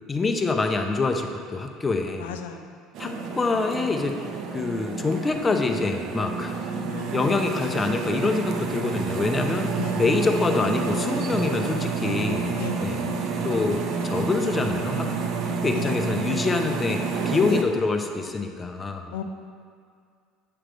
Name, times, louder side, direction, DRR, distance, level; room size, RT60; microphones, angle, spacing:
voice 1, 0.1-2.4 3.0-4.2 4.5-6.5 7.1-9.7 9.9-13.1 13.4-15.2 15.5-19.1, left 3 dB, 20° left, 4 dB, 0.6 m, -26 dB
voice 2, 2.2-2.6 3.0-3.2 6.9-7.2 9.7-10.0 12.5-13.0 15.7-15.9 17.5-17.6 19.1-19.2, left 8 dB, 90° left, 7 dB, 0.4 m, -34 dB
sound 1, 2.9-17.6, right 4 dB, 60° right, 0.6 m, -29 dB
7.6 x 3.3 x 5.0 m, 2.2 s
supercardioid pair, 95°, 0 cm